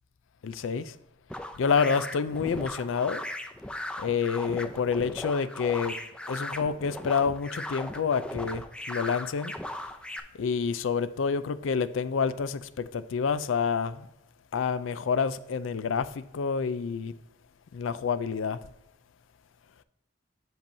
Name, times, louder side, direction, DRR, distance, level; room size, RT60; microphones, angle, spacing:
voice 1, 0.4-1.0 1.6-3.2 4.0-6.0 6.3-9.5 10.4-14.1 14.5-17.1 17.7-18.6, left 6 dB, 85° left, 0.4 m, -28 dB
sound 1, 1.3-10.2, left 1 dB, 5° left, 0.5 m, -38 dB
7.8 x 7.0 x 2.6 m
head